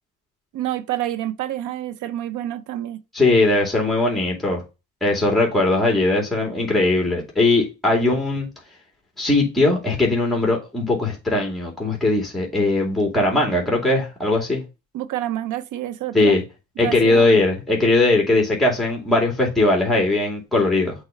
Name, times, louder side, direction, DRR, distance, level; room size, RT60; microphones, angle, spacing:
voice 1, 0.5-3.0 14.9-16.4 16.8-17.3, right 13 dB, 80° right, 0.7 m, -28 dB
voice 2, 3.1-4.6 5.0-8.5 9.2-14.6 16.1-16.4 16.8-20.9, left 2 dB, ahead, 2.4 m, -19 dB
6.5 x 3.1 x 5.1 m
cardioid pair, 90°, 30 cm